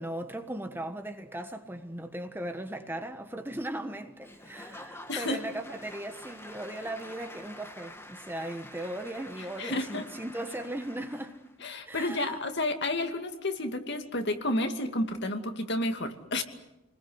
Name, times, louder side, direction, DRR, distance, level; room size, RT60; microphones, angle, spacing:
voice 1, 0.0-11.4 11.8-12.4, right 1 dB, 10° right, 1.4 m, -38 dB
Applause / Crowd, 4.2-11.5, left 1 dB, 10° left, 2.4 m, -48 dB
voice 2, 5.1-5.4 9.6-10.0 11.6-16.4, left 1 dB, 55° left, 2.5 m, -31 dB
29.5 x 21.0 x 8.1 m
head